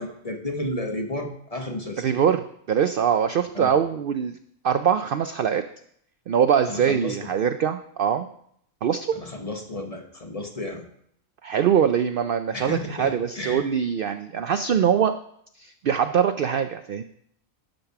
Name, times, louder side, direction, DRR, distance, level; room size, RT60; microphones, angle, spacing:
voice 1, 0.0-2.0 3.5-3.7 6.7-7.2 9.1-10.8 12.5-13.6, left 1 dB, 30° left, 3 dB, 1.1 m, -32 dB
voice 2, 2.0-4.4 4.6-5.6 6.3-8.3 8.8-9.1 11.4-15.1 15.6-17.0, right 8 dB, 65° right, 9 dB, 0.5 m, -23 dB
12.0 x 5.3 x 5.8 m, 0.69 s
omnidirectional pair, 1.4 m